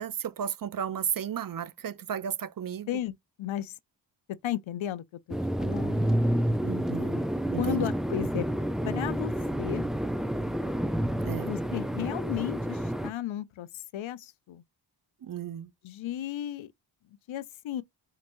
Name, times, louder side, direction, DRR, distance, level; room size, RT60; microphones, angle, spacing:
voice 1, 0.0-2.9 6.6-7.2 7.5-7.9 11.2-11.5 15.2-15.7, right 9 dB, 45° right, 0.6 m, -34 dB
voice 2, 2.9-3.8 4.4-6.2 7.6-8.5 8.8-9.3 9.6-9.9 11.4-14.6 15.8-16.7 17.3-17.8, left 12 dB, 75° left, 0.6 m, -34 dB
sound 1, 5.3-13.1, equal, ahead, 0.4 m, -29 dB
4.4 x 3.0 x 2.6 m
cardioid pair, 60°, 47 cm